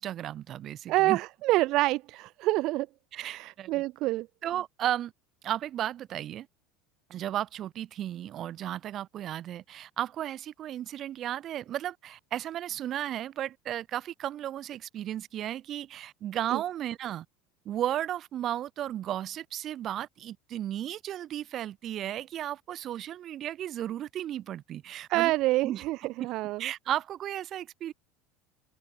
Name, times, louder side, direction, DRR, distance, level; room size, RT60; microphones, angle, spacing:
voice 1, 0.0-1.2 3.1-3.8 4.4-5.1 5.4-6.5 7.1-17.2 17.6-25.3 25.6-25.8 26.2-26.3 26.6-27.9, right 11 dB, 40° right, 6.5 m, -34 dB
voice 2, 0.9-2.9 3.1-4.3 16.5-16.6 25.1-26.7, right 18 dB, 55° right, 2.1 m, -27 dB
open air
supercardioid pair, 135°, 0 cm